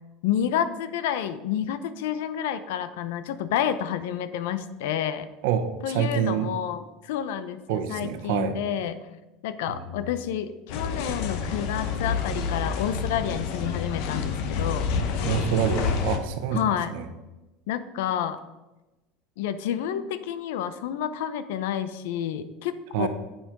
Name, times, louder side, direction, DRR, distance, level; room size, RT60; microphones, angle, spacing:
voice 1, 0.2-5.3 5.8-9.0 9.4-14.9 16.5-16.9 17.7-18.4 19.4-23.1, left 9 dB, 80° left, 13 dB, 0.7 m, -29 dB
voice 2, 5.4-6.5 7.7-8.6 9.7-10.0 15.2-17.1 22.9-23.1, right 9 dB, 65° right, 9 dB, 1.0 m, -27 dB
sound 1, 10.7-16.2, left 5 dB, 50° left, 1.0 m, -28 dB
8.9 x 7.5 x 5.2 m, 1.1 s
cardioid pair, 180°, 0 cm